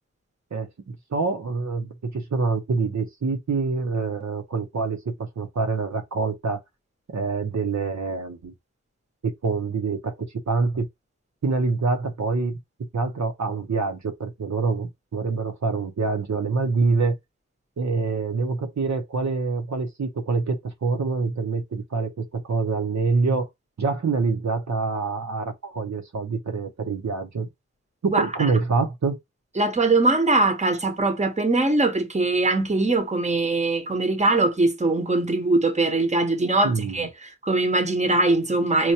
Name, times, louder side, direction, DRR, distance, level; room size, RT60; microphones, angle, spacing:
voice 1, 0.5-6.6 7.1-8.5 9.2-10.9 11.4-12.6 12.9-17.1 17.8-23.5 23.8-27.5 28.0-29.2 36.6-37.1, right 4 dB, 70° right, 0.7 m, -26 dB
voice 2, 29.6-38.9, right 2 dB, 25° right, 0.8 m, -22 dB
4.4 x 2.2 x 2.7 m
wide cardioid pair, 65°, 29 cm